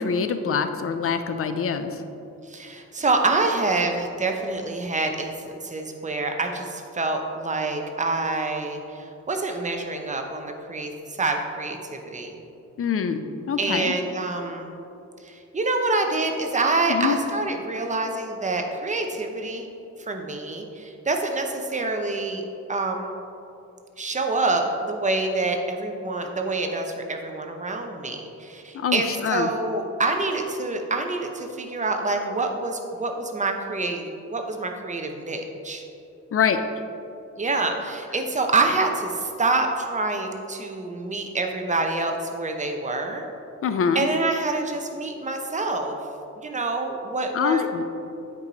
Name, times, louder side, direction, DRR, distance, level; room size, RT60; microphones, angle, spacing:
voice 1, 0.0-2.0 12.8-13.9 16.9-17.2 28.7-29.5 36.3-36.6 43.6-44.1 47.3-47.8, left 6 dB, 50° left, 9 dB, 0.5 m, -24 dB
voice 2, 2.4-12.4 13.6-14.7 15.2-19.7 20.0-22.4 22.7-23.2 24.0-35.8 37.4-43.3 43.9-46.0 46.4-47.8, right 3 dB, 25° right, 4 dB, 0.7 m, -26 dB
8.6 x 4.8 x 4.0 m, 2.8 s
wide cardioid pair, 115°, 29 cm